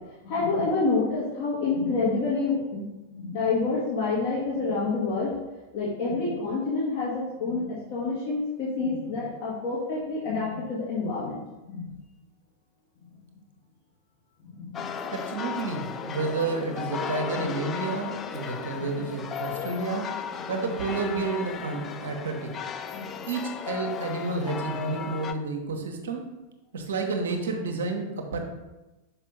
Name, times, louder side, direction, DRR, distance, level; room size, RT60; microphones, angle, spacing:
voice 1, 0.2-2.9 3.1-5.3 5.7-11.9 14.5-14.8 18.8-19.1 22.9-23.0, left 3 dB, 50° left, -6 dB, 1.7 m, -28 dB
sound 1, 14.7-25.3, left 7 dB, 25° left, 0.4 m, -35 dB
voice 2, 15.1-20.1 20.5-22.5 23.3-26.2 26.7-28.4, right 3 dB, 65° right, 4 dB, 1.0 m, -30 dB
5.7 x 5.5 x 4.1 m, 1.1 s
figure-of-eight pair, 90°, 0 cm